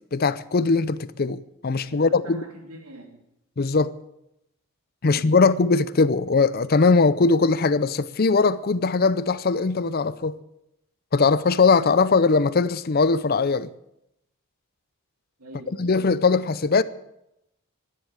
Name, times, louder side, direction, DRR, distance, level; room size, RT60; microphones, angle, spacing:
voice 1, 0.1-2.4 3.6-3.9 5.0-10.4 11.1-13.7 15.8-16.8, left 4 dB, 45° left, 0.5 m, -20 dB
voice 2, 1.8-3.2 5.0-5.5 15.4-16.3, right 1 dB, 85° right, 3.0 m, -45 dB
13.5 x 10.5 x 9.0 m
head